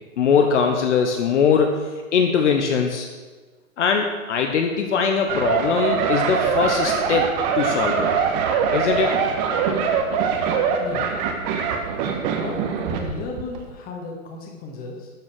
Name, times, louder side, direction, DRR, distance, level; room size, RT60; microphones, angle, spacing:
voice 1, 0.2-1.8 2.1-3.1 3.8-8.2 8.7-9.2, left 6 dB, 55° left, 3 dB, 1.3 m, -21 dB
sound 1, 5.3-13.1 13.4-13.6, right 6 dB, 30° right, 1.4 m, -23 dB
voice 2, 12.4-15.1, left 3 dB, 20° left, 1 dB, 2.0 m, -34 dB
12.0 x 6.3 x 6.3 m, 1.3 s
hypercardioid pair, 135°, 42 cm